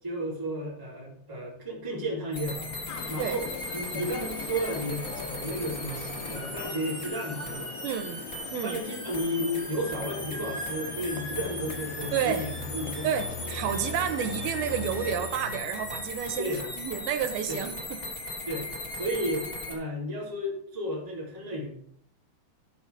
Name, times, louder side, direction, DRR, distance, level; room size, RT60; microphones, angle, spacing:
voice 1, 0.0-3.5 3.7-7.8 8.6-13.1 13.4-13.7 14.0-14.1 16.4-16.6 17.5-17.6 18.4-18.7 18.9-21.7, equal, 5° right, 3.1 m, -33 dB
sound 1, 2.3-19.7, left 1 dB, 20° left, 1.3 m, -37 dB
sound 2, 2.9-15.3, left 8 dB, 80° left, 2.9 m, -43 dB
voice 2, 7.8-8.8 12.1-12.5 13.0-18.0, right 8 dB, 75° right, 2.7 m, -30 dB
sound 3, 9.9-17.1, left 3 dB, 65° left, 2.6 m, -42 dB
13.0 x 5.3 x 5.0 m
omnidirectional pair, 4.6 m